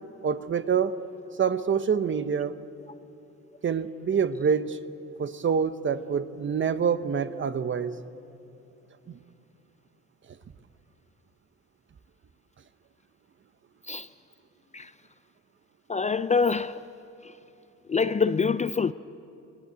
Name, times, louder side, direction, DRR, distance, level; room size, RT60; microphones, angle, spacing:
voice 1, 0.2-0.9 1.4-2.5 3.6-4.8 5.2-8.0 9.1-9.2, right 6 dB, 40° right, 0.9 m, -26 dB
voice 2, 15.9-16.8 17.9-18.9, left 5 dB, 25° left, 0.4 m, -25 dB
20.0 x 19.5 x 8.1 m
cardioid pair, 90°, 30 cm